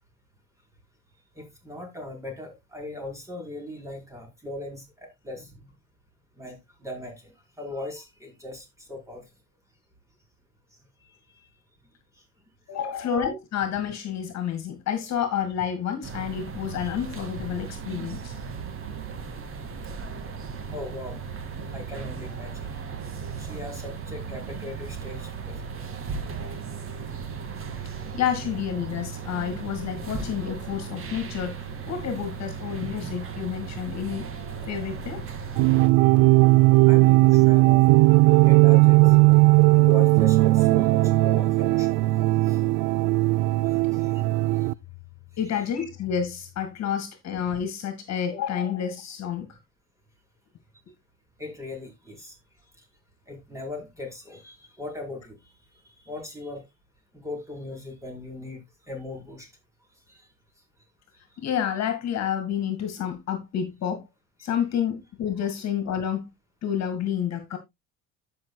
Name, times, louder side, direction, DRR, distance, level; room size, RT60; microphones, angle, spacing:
voice 1, 1.3-5.6 6.4-9.2 11.4-11.5 12.7-13.1 16.8-17.0 20.2-21.2 21.7-22.8 23.4-25.7 36.8-37.8 38.4-39.2 39.7-41.9 42.4-42.6 43.6-44.7 51.4-52.3 53.3-56.6 57.1-59.5 60.1-60.3 64.4-64.5, left 2 dB, 10° right, 4.8 m, -39 dB
voice 2, 12.7-18.4 28.1-34.3 34.6-35.2 45.4-49.5 61.4-64.0 64.4-66.3 66.6-67.6, left 8 dB, 50° left, 2.2 m, -29 dB
sound 1, 16.0-35.9, right 6 dB, 35° right, 2.2 m, -36 dB
sound 2, 35.6-44.7, right 22 dB, 70° right, 0.5 m, -18 dB
14.0 x 6.0 x 2.3 m
supercardioid pair, 85°, 35 cm